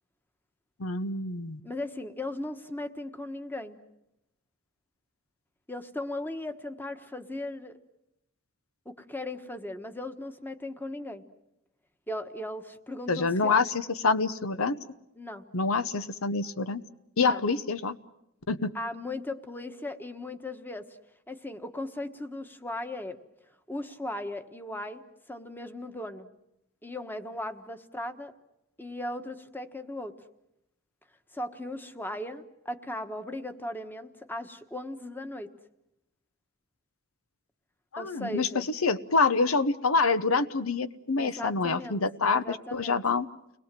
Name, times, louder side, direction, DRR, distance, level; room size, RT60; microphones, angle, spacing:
voice 1, 0.8-1.6 13.1-14.8 15.5-16.8 17.2-18.0 18.5-18.7 37.9-43.3, left 4 dB, 90° left, 12 dB, 1.0 m, -26 dB
voice 2, 1.6-3.8 5.7-7.8 8.8-11.2 12.1-13.6 15.2-15.4 17.2-17.4 18.7-20.9 21.3-23.2 23.7-25.0 25.3-26.3 26.8-28.3 28.8-30.2 31.3-35.5 38.0-38.7 41.2-42.0 42.4-43.0, left 1 dB, 10° left, 8 dB, 1.3 m, -37 dB
30.0 x 21.0 x 7.6 m, 0.84 s
head